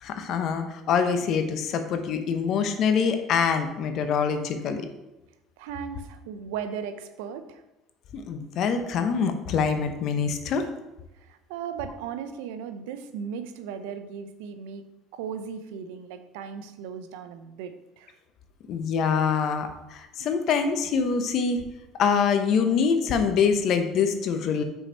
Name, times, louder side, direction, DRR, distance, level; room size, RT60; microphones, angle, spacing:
voice 1, 0.0-4.9 8.1-10.6 18.7-21.6 22.0-24.6, left 6 dB, 60° left, 7 dB, 0.9 m, -25 dB
voice 2, 5.6-7.6 11.2-18.1 20.2-20.3, right 7 dB, 85° right, 9 dB, 0.7 m, -37 dB
5.6 x 4.7 x 5.6 m, 0.99 s
supercardioid pair, 95°, 0 cm